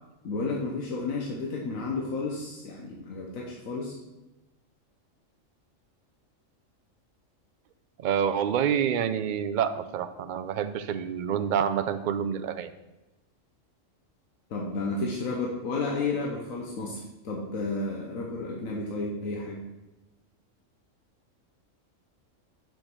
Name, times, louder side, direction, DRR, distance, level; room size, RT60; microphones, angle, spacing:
voice 1, 0.2-4.0 14.5-17.0 17.2-19.6, left 3 dB, 85° left, -2 dB, 1.4 m, -32 dB
voice 2, 8.0-12.7, right 8 dB, 60° right, 9 dB, 0.5 m, -27 dB
6.3 x 5.1 x 6.1 m, 1.0 s
omnidirectional pair, 1.4 m